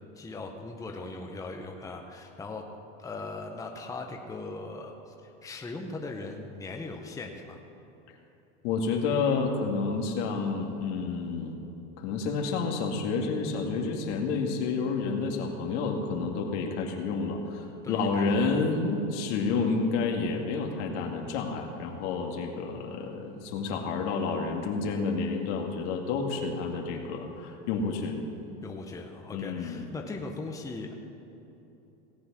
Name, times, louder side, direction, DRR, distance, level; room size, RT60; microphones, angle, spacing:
voice 1, 0.2-2.6 3.0-7.6 17.8-18.6 28.6-30.9, left 3 dB, 10° left, 2 dB, 0.9 m, -39 dB
voice 2, 8.6-11.5 12.0-28.2 29.3-29.8, left 4 dB, 70° left, 2 dB, 2.0 m, -29 dB
17.5 x 8.0 x 6.1 m, 3.0 s
supercardioid pair, 130°, 37 cm